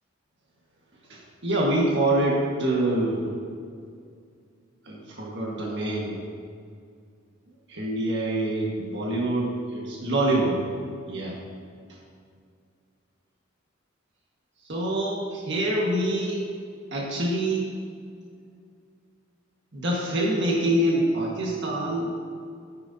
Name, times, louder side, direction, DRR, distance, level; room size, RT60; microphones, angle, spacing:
voice 1, 1.1-3.2 3.8-3.9 4.8-6.2 7.7-10.6 11.0-11.3 14.7-16.4 16.9-17.7 19.7-22.2, right 1 dB, 60° right, -3 dB, 1.7 m, -25 dB
11.5 x 10.0 x 2.8 m, 2.2 s
head